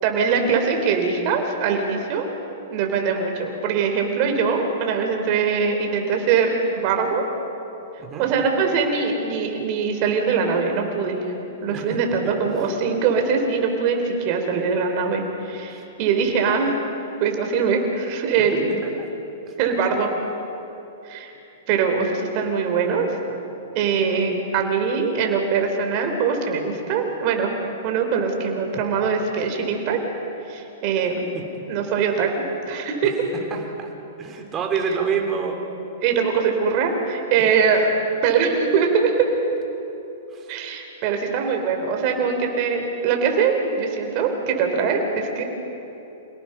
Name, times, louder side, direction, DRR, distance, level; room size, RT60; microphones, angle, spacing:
voice 1, 0.0-2.3 2.7-7.3 8.2-11.2 11.6-16.7 17.2-18.7 19.6-20.1 21.1-21.3 21.7-23.1 23.7-27.5 27.8-30.0 30.5-31.2 31.7-33.1 36.0-37.9 38.2-39.3 40.5-45.4, right 5 dB, 45° right, 4 dB, 3.8 m, -22 dB
voice 2, 33.3-33.9 34.2-35.6 40.3-40.5, right 6 dB, 25° right, 2 dB, 3.5 m, -28 dB
27.5 x 18.0 x 5.7 m, 3.0 s
hypercardioid pair, 125°, 0 cm